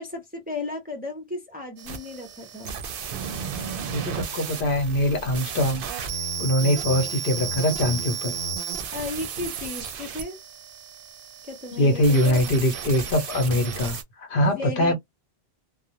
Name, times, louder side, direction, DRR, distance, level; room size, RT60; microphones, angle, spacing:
voice 1, 0.0-2.8 6.1-6.2 8.9-10.4 11.4-12.5 14.4-14.9, left 3 dB, 10° right, 0.5 m, -35 dB
sound 1, 1.8-14.0, right 6 dB, 65° right, 0.7 m, -33 dB
voice 2, 3.9-5.8 6.4-8.4 11.8-14.9, left 1 dB, 60° left, 0.9 m, -23 dB
2.4 x 2.1 x 2.8 m
omnidirectional pair, 1.1 m